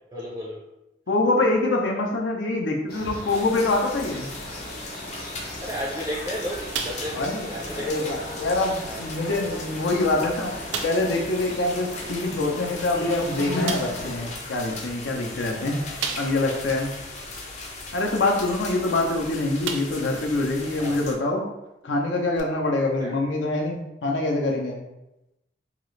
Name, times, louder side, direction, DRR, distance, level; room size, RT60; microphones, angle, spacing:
voice 1, 0.1-0.6 5.6-7.2 7.5-8.1 8.9-9.1 15.5-16.1 20.8-21.0 23.0-23.1, equal, 15° right, -4 dB, 0.4 m, -34 dB
voice 2, 1.1-4.3 7.1-7.5 7.8-16.9 17.9-21.4 21.8-24.8, left 2 dB, 85° left, 1 dB, 0.6 m, -25 dB
sound 1, 2.9-14.3, left 1 dB, 55° left, 0.9 m, -37 dB
sound 2, 3.3-21.1, left 3 dB, 40° left, 0.5 m, -38 dB
sound 3, 6.7-7.4 7.7-7.9 8.5-8.6 9.4-9.5 9.9-10.0 10.7-11.1 12.8-12.9 13.7-14.1 16.0-16.6 17.1-17.2 19.0-19.2 19.6-20.1 20.6-20.7 22.4-22.5, right 5 dB, 85° right, 0.4 m, -33 dB
2.9 x 2.4 x 3.1 m, 0.93 s
head